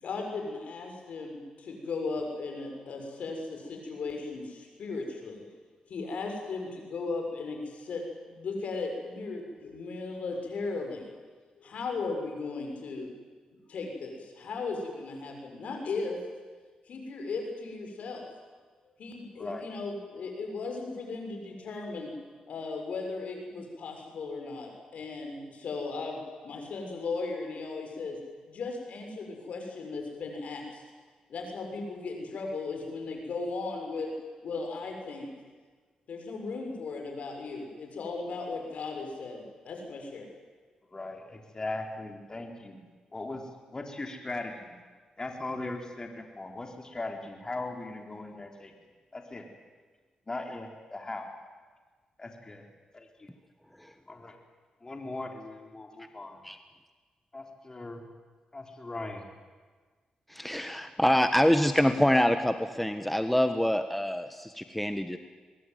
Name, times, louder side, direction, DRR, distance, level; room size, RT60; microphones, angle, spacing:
voice 1, 0.0-5.4 5.9-11.1 11.6-13.1 13.7-16.2 16.9-18.3 19.0-22.1 22.5-28.2 28.5-30.8 31.3-34.1 34.4-35.3 36.1-40.3, left 3 dB, 70° left, 3 dB, 6.7 m, -36 dB
voice 2, 19.4-19.7 40.9-42.8 43.1-43.4 43.7-44.8 45.2-48.7 49.1-49.5 50.3-51.3 52.2-52.7 52.9-53.3 54.1-54.4 54.8-56.4 57.3-58.0 58.5-59.3, left 2 dB, 30° left, 3 dB, 3.9 m, -39 dB
voice 3, 60.3-65.2, equal, 5° left, 8 dB, 1.4 m, -25 dB
23.0 x 21.0 x 9.5 m, 1.4 s
cardioid pair, 70°, 2 cm